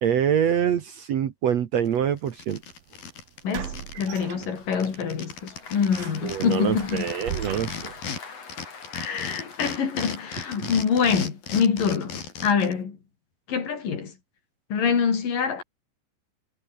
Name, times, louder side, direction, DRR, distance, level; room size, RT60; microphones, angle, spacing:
voice 1, 0.0-2.6 6.2-7.9, right 8 dB, 60° right, 2.2 m, -25 dB
sound 1, 1.9-2.0 2.3-4.2 4.4-4.5 4.7-8.2 8.5-12.7, left 6 dB, 85° left, 5.9 m, -36 dB
sound 2, 2.4-2.6 3.5-5.0 5.4-5.6 6.0-8.1, right 10 dB, 85° right, 3.9 m, -37 dB
voice 2, 3.4-7.0 8.9-13.0 13.5-14.1 14.7-15.6, left 6 dB, 70° left, 5.4 m, -25 dB
Applause, 4.6-11.7, left 5 dB, 45° left, 4.8 m, -44 dB
omnidirectional pair, 4.1 m